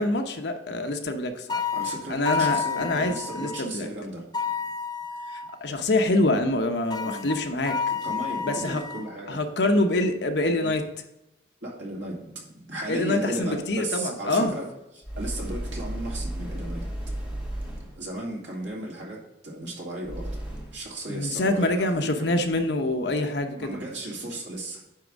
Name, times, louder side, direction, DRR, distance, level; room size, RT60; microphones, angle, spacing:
voice 1, 0.0-1.6 2.1-3.9 5.3-7.7 8.4-8.8 9.3-10.8 12.9-14.5 21.1-23.8, left 2 dB, 70° left, 6 dB, 0.9 m, -25 dB
sound 1, 1.5-3.6 4.3-5.6 6.9-9.1, left 6 dB, 20° left, 0.4 m, -30 dB
voice 2, 1.7-4.2 5.9-6.1 7.0-7.2 8.0-9.4 10.6-10.7 11.6-14.7 14.9-16.8 17.5-17.6 18.0-20.3 20.7-22.4 23.6-24.8, right 1 dB, 80° right, -2 dB, 2.3 m, -35 dB
sound 2, 15.0-18.1 20.0-20.9, right 1 dB, 5° right, 1.3 m, -33 dB
9.3 x 3.5 x 6.2 m, 0.91 s
head